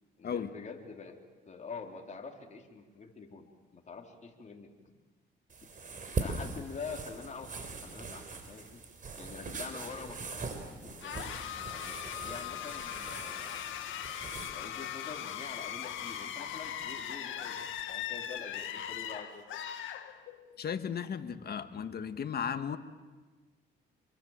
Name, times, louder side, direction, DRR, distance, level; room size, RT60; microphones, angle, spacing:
voice 1, 0.2-4.9 6.2-8.8 9.2-11.2 11.9-13.8 14.5-19.6, left 5 dB, 35° left, 1 dB, 4.0 m, -46 dB
sound 1, 5.5-14.5, right 4 dB, 40° right, 4.2 m, -41 dB
sound 2, 11.0-20.6, left 10 dB, 80° left, 1.9 m, -39 dB
voice 2, 20.6-22.8, left 7 dB, 55° left, 9 dB, 1.6 m, -35 dB
27.0 x 23.5 x 7.6 m, 1.3 s
cardioid pair, 90°, 20 cm